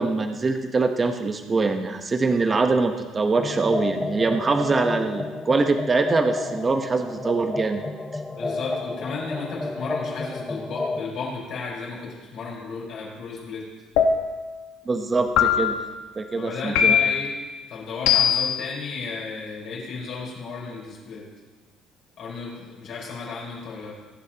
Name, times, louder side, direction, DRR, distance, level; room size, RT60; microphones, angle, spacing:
voice 1, 0.0-7.8 14.9-15.8 16.2-16.9, right 3 dB, 20° right, 5 dB, 0.9 m, -23 dB
sound 1, 3.4-11.1, left 3 dB, 10° left, 0.7 m, -31 dB
voice 2, 8.3-13.7 16.4-17.3 17.7-21.3 22.2-23.9, left 4 dB, 50° left, -5 dB, 4.4 m, -34 dB
sound 2, 14.0-14.5 15.4-15.9 16.8-17.3 18.1-18.6, left 7 dB, 80° left, 1.3 m, -20 dB
22.0 x 10.5 x 2.9 m, 1.3 s
cardioid pair, 155°, 0 cm